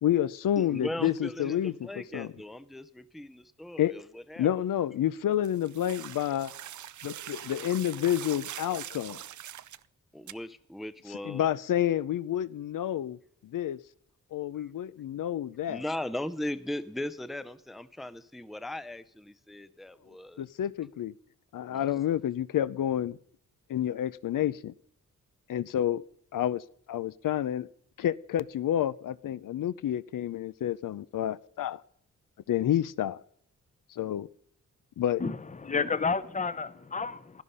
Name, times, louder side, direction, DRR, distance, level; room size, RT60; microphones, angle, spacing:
voice 1, 0.0-1.7 2.1-2.3 3.8-3.9 4.4-6.5 7.0-9.2 11.2-13.8 14.3-15.8 20.4-21.1 21.5-23.2 23.7-24.7 25.5-26.0 26.3-26.6 26.9-27.7 28.0-31.8 32.5-33.2 33.9-34.3 35.0-35.2, left 11 dB, 85° left, 0.6 m, -29 dB
voice 2, 0.6-4.5 10.1-11.5 14.5-14.7 15.7-20.4 21.7-21.9, left 1 dB, ahead, 0.5 m, -38 dB
sound 1, 5.4-9.8 10.3-10.4, right 11 dB, 70° right, 0.5 m, -43 dB
voice 3, 35.2-37.4, left 5 dB, 25° left, 0.8 m, -31 dB
16.5 x 12.0 x 5.5 m
wide cardioid pair, 165°, 31 cm